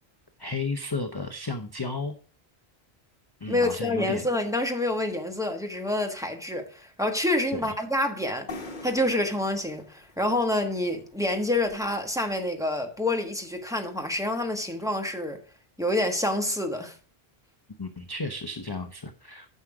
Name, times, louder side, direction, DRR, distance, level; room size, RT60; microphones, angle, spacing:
voice 1, 0.4-2.1 3.4-4.2 7.5-7.7 17.8-19.5, left 3 dB, 25° left, 0.7 m, -33 dB
voice 2, 3.5-15.4 15.8-17.0, left 1 dB, 5° right, 1.3 m, -27 dB
sound 1, 8.5-12.1, left 2 dB, 50° left, 1.3 m, -44 dB
9.5 x 6.4 x 4.8 m
omnidirectional pair, 1.1 m